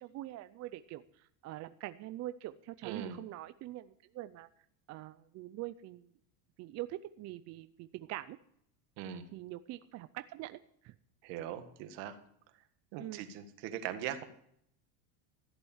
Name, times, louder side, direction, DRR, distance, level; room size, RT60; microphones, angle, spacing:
voice 1, 0.0-4.5 4.9-6.1 6.6-8.4 9.3-10.6 10.8-10.9 13.0-13.2, right 15 dB, 35° right, 12 dB, 0.5 m, -44 dB
voice 2, 2.8-3.2 9.0-9.2 11.2-12.1 12.9-14.2, right 10 dB, 65° right, 8 dB, 1.8 m, -40 dB
14.0 x 8.0 x 7.1 m, 0.70 s
supercardioid pair, 130°, 45 cm